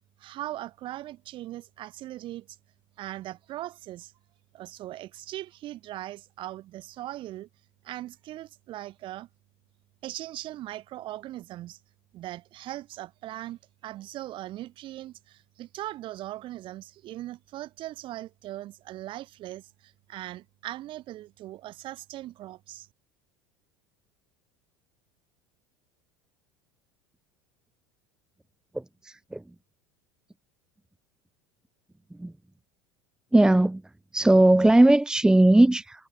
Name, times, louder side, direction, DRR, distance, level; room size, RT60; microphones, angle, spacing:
voice 1, 0.2-2.6 3.0-4.1 4.5-7.5 7.8-9.3 10.0-11.8 12.1-22.9, right 15 dB, 45° right, 6.5 m, -39 dB
voice 2, 28.7-29.4 32.1-32.3 33.3-33.8 34.1-36.1, right 1 dB, 5° right, 1.2 m, -19 dB
figure-of-eight pair, 75°, 11 cm